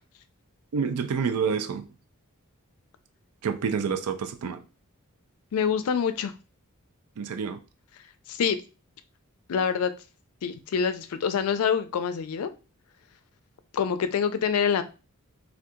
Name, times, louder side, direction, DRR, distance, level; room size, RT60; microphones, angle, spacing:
voice 1, 0.7-1.8 3.4-4.6 7.2-7.6, right 6 dB, 90° right, 0.4 m, -28 dB
voice 2, 5.5-6.3 8.3-8.6 9.5-9.9 10.4-12.5 13.7-14.8, left 7 dB, 75° left, 0.4 m, -26 dB
2.7 x 2.3 x 3.6 m
head